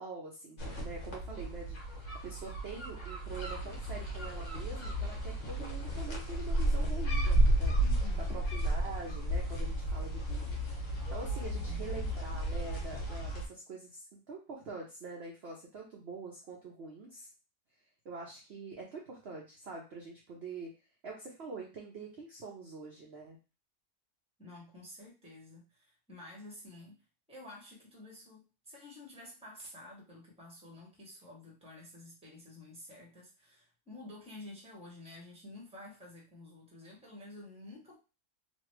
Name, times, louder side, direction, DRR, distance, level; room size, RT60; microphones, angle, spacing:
voice 1, 0.0-1.8 2.2-7.7 8.3-10.6 11.1-17.3 18.0-20.7 21.0-23.4, right 3 dB, 55° right, -2 dB, 0.8 m, -45 dB
sound 1, 0.6-13.4, right 1 dB, 50° left, 1.3 m, -33 dB
voice 2, 7.8-8.4 11.5-11.9 24.4-38.0, left 1 dB, 5° right, -3 dB, 1.0 m, -50 dB
3.2 x 2.4 x 3.1 m, 0.32 s
omnidirectional pair, 1.6 m